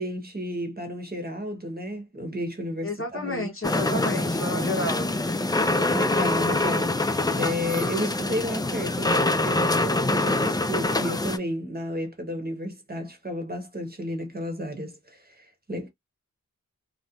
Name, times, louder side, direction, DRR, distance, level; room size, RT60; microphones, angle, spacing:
voice 1, 0.0-3.5 4.5-4.9 5.9-15.9, equal, 30° right, 0.9 m, -32 dB
voice 2, 2.8-5.1, left 1 dB, 40° left, 0.8 m, -30 dB
sound 1, 3.6-11.4, left 2 dB, 15° left, 0.3 m, -25 dB
2.4 x 2.1 x 2.8 m
wide cardioid pair, 60°, 33 cm